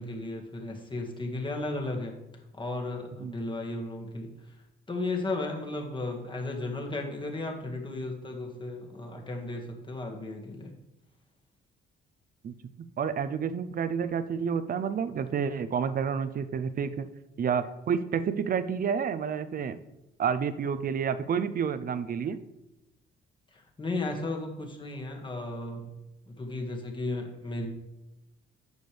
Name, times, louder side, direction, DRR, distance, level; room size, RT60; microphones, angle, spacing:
voice 1, 0.0-2.1 2.6-4.3 4.9-10.7 23.5-26.0 26.3-27.7, left 2 dB, 25° left, 1 dB, 1.8 m, -35 dB
voice 2, 13.0-17.1 17.4-19.8 20.2-22.4, right 7 dB, 45° right, 12 dB, 0.6 m, -29 dB
9.4 x 6.4 x 3.3 m, 0.93 s
cardioid pair, 90°, 20 cm